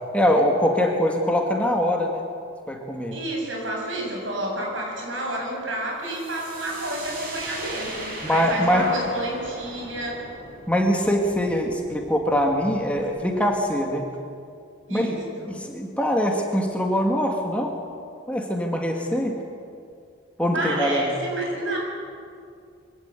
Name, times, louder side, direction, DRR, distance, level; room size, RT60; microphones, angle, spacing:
voice 1, 0.1-2.2 2.7-3.2 8.2-8.9 10.7-14.1 14.9-15.2 15.5-17.8 18.3-19.4 20.4-21.1, equal, 5° left, 1 dB, 2.0 m, -23 dB
voice 2, 3.1-10.2 14.9-15.5 20.5-21.8, right 1 dB, 75° right, -1 dB, 7.1 m, -30 dB
sound 1, 6.1-13.7, right 2 dB, 50° right, 5.2 m, -39 dB
24.5 x 17.0 x 8.4 m, 2.4 s
head